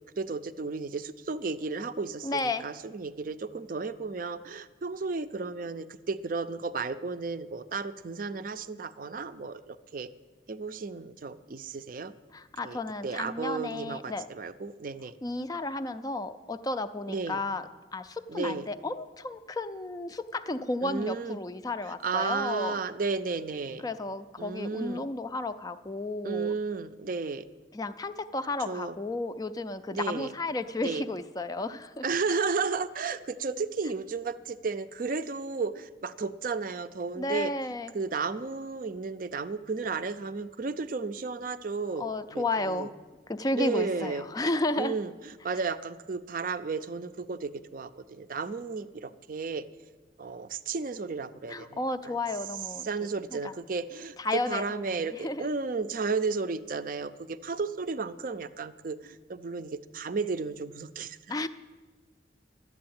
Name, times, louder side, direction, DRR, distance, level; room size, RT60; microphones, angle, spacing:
voice 1, 0.2-10.1 10.5-12.1 12.6-15.1 17.1-17.4 18.3-18.7 20.8-21.4 22.0-23.9 24.4-25.1 26.2-27.4 28.7-29.0 29.9-30.3 30.8-31.1 32.0-37.5 37.9-42.9 43.5-44.2 44.8-45.1 45.4-49.7 50.2-51.8 52.1-52.2 52.8-61.2, right 4 dB, 50° right, 12 dB, 0.5 m, -33 dB
voice 2, 2.2-2.6 12.3-14.3 15.2-22.8 23.8-26.5 27.7-32.0 37.2-37.9 42.0-42.9 43.3-45.0 51.5-52.9 53.3-53.5 54.2-55.5 61.3-61.5, left 2 dB, 20° left, 11 dB, 0.4 m, -33 dB
11.5 x 8.4 x 8.7 m, 1.3 s
head